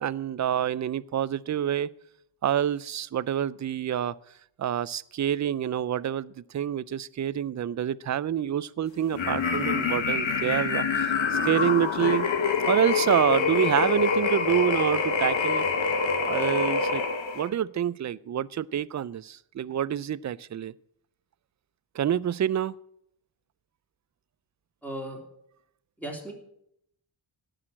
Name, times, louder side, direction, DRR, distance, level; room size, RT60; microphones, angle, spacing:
voice 1, 0.0-1.9 2.4-4.1 4.6-12.3 12.7-15.6 16.3-17.0 17.3-20.7 22.0-22.7, right 10 dB, 40° right, 19 dB, 0.4 m, -27 dB
sound 1, 9.1-17.5, left 5 dB, 90° left, 1.6 m, -26 dB
voice 2, 24.8-25.2 26.0-26.3, right 1 dB, 5° left, 0 dB, 3.1 m, -36 dB
17.0 x 6.4 x 7.6 m, 0.74 s
wide cardioid pair, 130°, 44 cm